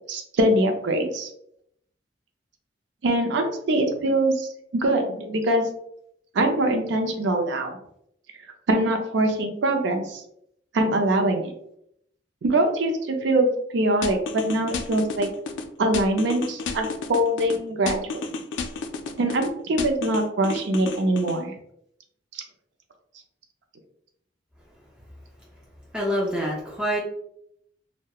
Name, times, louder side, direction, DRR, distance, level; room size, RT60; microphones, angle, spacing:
voice 1, 0.1-1.3 3.0-4.5 4.7-5.6 6.3-7.8 8.7-10.2 10.7-11.5 12.4-15.3 15.8-18.2 19.2-21.5 22.3-22.4, right 1 dB, 75° right, 5 dB, 0.4 m, -23 dB
sound 1, 14.0-15.6 15.9-17.6 17.9-19.5 19.8-21.4, left 4 dB, 85° left, 0.3 m, -31 dB
voice 2, 25.9-27.0, equal, 5° right, -5 dB, 0.4 m, -26 dB
2.8 x 2.1 x 2.2 m, 0.74 s
head